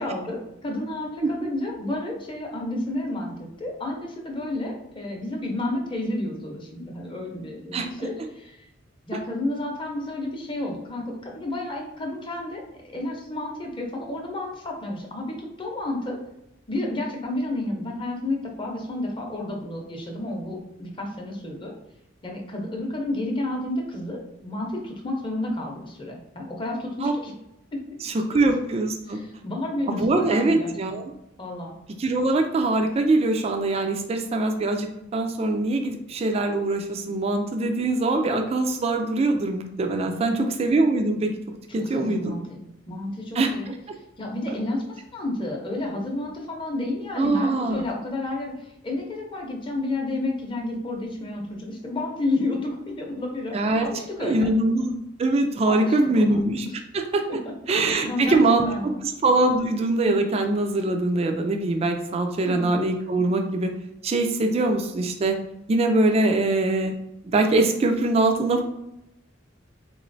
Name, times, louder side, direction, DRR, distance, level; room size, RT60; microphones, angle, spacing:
voice 1, 0.0-8.6 9.1-16.2 16.7-21.7 22.2-27.3 27.7-27.8 28.3-28.4 29.1-30.7 31.4-31.7 40.0-40.6 41.8-43.7 44.2-48.5 48.8-53.6 53.8-54.5 55.7-56.4 57.7-59.0 62.5-62.7 68.5-68.6, left 2 dB, 25° left, 0 dB, 0.7 m, -31 dB
voice 2, 7.7-8.1 27.0-27.1 28.0-29.2 29.9-31.1 32.0-41.3 41.7-42.4 43.3-43.8 47.2-47.8 53.5-53.8 54.2-56.7 56.9-57.2 57.7-63.7 64.0-65.4 65.7-66.9 67.3-68.6, right 2 dB, 30° right, 5 dB, 0.3 m, -23 dB
3.8 x 3.0 x 2.6 m, 0.83 s
head